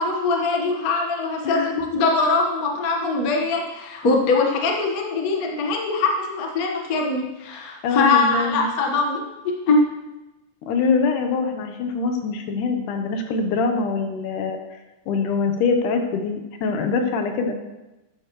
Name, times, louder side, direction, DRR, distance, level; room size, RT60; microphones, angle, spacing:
voice 1, 0.0-9.3 9.7-9.8, left 3 dB, 85° left, 1 dB, 0.7 m, -22 dB
voice 2, 1.4-1.9 7.8-8.7 10.6-14.8 15.1-17.5, left 4 dB, 70° left, 5 dB, 2.4 m, -24 dB
13.5 x 9.5 x 3.1 m, 1.0 s
omnidirectional pair, 4.0 m